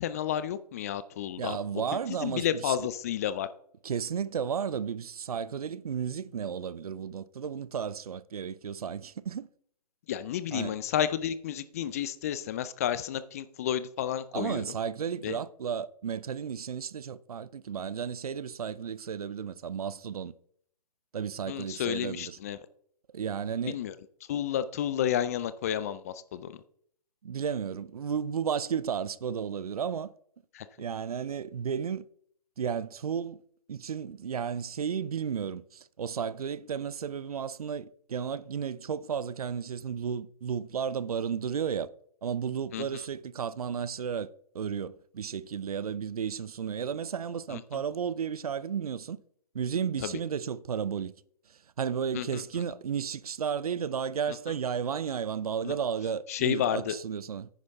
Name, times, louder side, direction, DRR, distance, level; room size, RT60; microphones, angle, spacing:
voice 1, 0.0-1.6 2.2-3.5 10.1-14.6 15.2-15.4 21.5-22.6 23.7-23.9 24.3-26.5 30.5-30.7 42.7-42.9 47.5-47.6 50.0-50.1 52.1-52.4 55.7-55.8 56.3-57.0, left 10 dB, 25° left, 0.4 m, -31 dB
voice 2, 1.4-2.8 3.8-9.5 10.5-10.8 14.3-20.3 21.1-22.4 23.1-23.8 27.2-30.1 30.8-32.0 32.6-33.4 33.7-41.9 42.2-49.2 49.5-51.1 51.8-57.5, right 7 dB, 65° right, 0.6 m, -33 dB
10.0 x 9.4 x 3.5 m
figure-of-eight pair, 140°, 21 cm